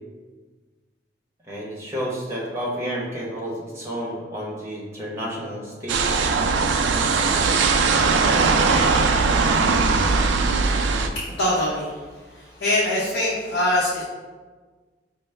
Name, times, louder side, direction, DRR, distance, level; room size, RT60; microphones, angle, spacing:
voice 1, 1.5-6.2, equal, 15° right, -5 dB, 0.7 m, -31 dB
sound 1, 5.9-11.1, right 4 dB, 75° right, 0.3 m, -20 dB
voice 2, 11.4-11.9 12.6-14.0, left 1 dB, 85° left, -6 dB, 0.7 m, -22 dB
5.2 x 2.0 x 3.2 m, 1.4 s
head